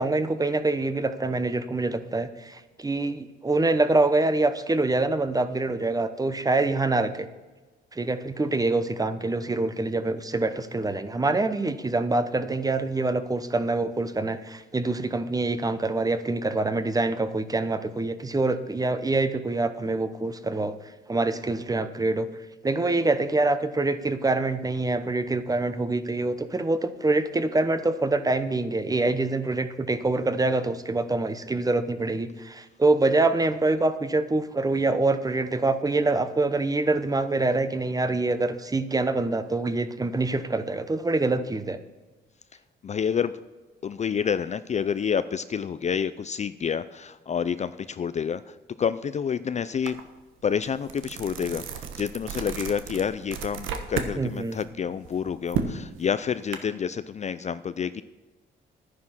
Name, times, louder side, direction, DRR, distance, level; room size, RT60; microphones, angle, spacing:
voice 1, 0.0-7.3 7.9-20.7 21.1-22.3 22.6-41.8 54.2-54.6, right 2 dB, 20° right, 11 dB, 0.9 m, -25 dB
voice 2, 42.8-43.3 43.8-50.0 50.4-58.0, left 7 dB, 35° left, 13 dB, 0.4 m, -28 dB
sound 1, 49.9-50.0 50.4-54.1 54.5-56.6, right 6 dB, 90° right, 1.2 m, -33 dB
11.0 x 9.6 x 6.1 m, 1.2 s
cardioid pair, 90°, 20 cm